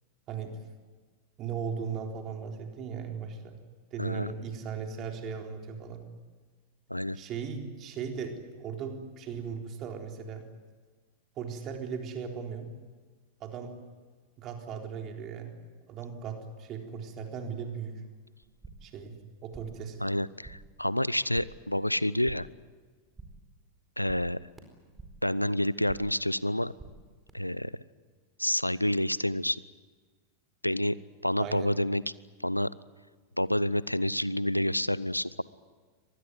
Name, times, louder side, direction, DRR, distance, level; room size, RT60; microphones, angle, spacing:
voice 1, 0.3-0.6 1.4-3.6 3.9-6.0 7.1-10.4 11.4-12.7 13.4-13.7 14.4-15.5 15.9-18.0 18.8-19.1 19.4-20.1 31.3-31.7, right 6 dB, 35° right, 3 dB, 3.9 m, -37 dB
voice 2, 4.0-4.3 6.9-7.2 20.0-22.5 24.0-24.4 25.2-26.7 27.3-27.7 28.4-29.6 30.6-31.0 31.2-32.0 32.4-32.7 33.4-35.4, left 1 dB, 90° left, 20 dB, 0.7 m, -28 dB
sound 1, 18.4-19.0 19.2-19.9 20.2-20.8 21.1-21.7 22.0-22.6 22.9-23.5 23.8-25.3 25.6-26.2 26.5-27.3, right 3 dB, 10° right, 4.6 m, -51 dB
25.0 x 20.0 x 9.6 m, 1.4 s
figure-of-eight pair, 90°, 0 cm